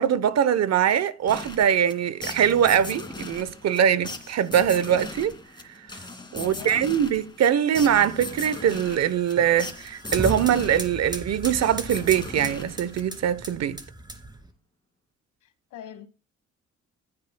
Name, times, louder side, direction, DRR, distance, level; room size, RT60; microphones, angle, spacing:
voice 1, 0.0-5.3 6.3-13.8, right 9 dB, 60° right, 0.8 m, -22 dB
sound 1, 1.3-13.4, left 2 dB, 15° left, 2.4 m, -39 dB
voice 2, 6.4-6.8 15.4-16.1, left 11 dB, 85° left, 1.5 m, -42 dB
sound 2, 7.8-14.5, right 2 dB, 15° right, 2.3 m, -37 dB
15.5 x 8.9 x 2.2 m
cardioid pair, 90°, 30 cm